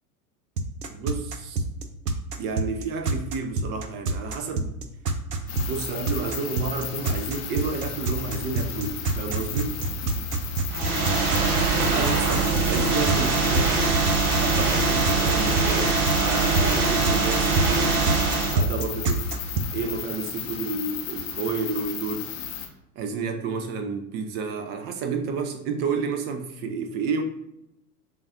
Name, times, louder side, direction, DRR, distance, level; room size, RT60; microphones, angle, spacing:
sound 1, 0.6-19.6, right 3 dB, 90° right, 0.6 m, -27 dB
voice 1, 0.9-1.6 2.4-4.8 5.6-9.9 11.9-13.8 14.4-18.0 18.5-19.3 19.7-22.3 23.0-27.2, right 5 dB, 25° right, 6 dB, 0.4 m, -30 dB
sound 2, 5.5-22.7, left 9 dB, 30° left, 0.6 m, -35 dB
sound 3, 10.7-18.6, right 4 dB, 70° right, 1.2 m, -23 dB
6.9 x 2.4 x 2.6 m, 0.82 s
figure-of-eight pair, 90°, 46 cm